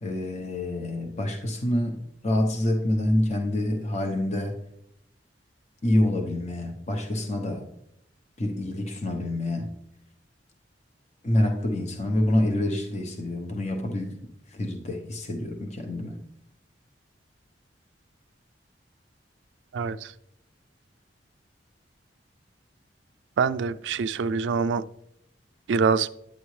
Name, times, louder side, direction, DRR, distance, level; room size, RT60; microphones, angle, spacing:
voice 1, 0.0-2.0 2.2-4.6 5.8-7.7 8.4-9.8 11.2-14.1 14.5-16.2, left 1 dB, 40° left, 3 dB, 0.8 m, -27 dB
voice 2, 19.7-20.1 23.4-24.8 25.7-26.1, right 5 dB, 80° right, 12 dB, 0.3 m, -25 dB
9.2 x 8.5 x 3.2 m, 0.75 s
head